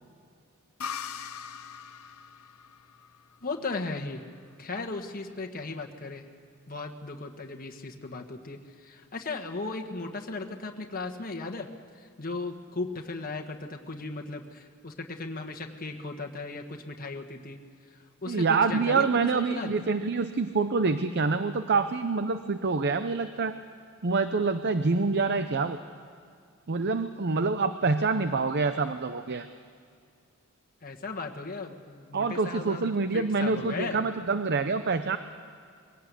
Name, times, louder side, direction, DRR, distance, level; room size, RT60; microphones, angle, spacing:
sound 1, 0.8-4.3, left 7 dB, 85° left, 0.9 m, -41 dB
voice 1, 3.4-4.2 4.6-6.3 6.7-11.7 12.0-17.6 17.9-19.1 19.3-19.7 30.8-34.0, left 3 dB, 40° left, 3 dB, 1.4 m, -36 dB
voice 2, 18.3-23.5 24.0-25.8 26.7-29.5 32.1-35.2, right 4 dB, 50° right, 10 dB, 0.7 m, -26 dB
22.0 x 17.0 x 8.3 m, 2.3 s
head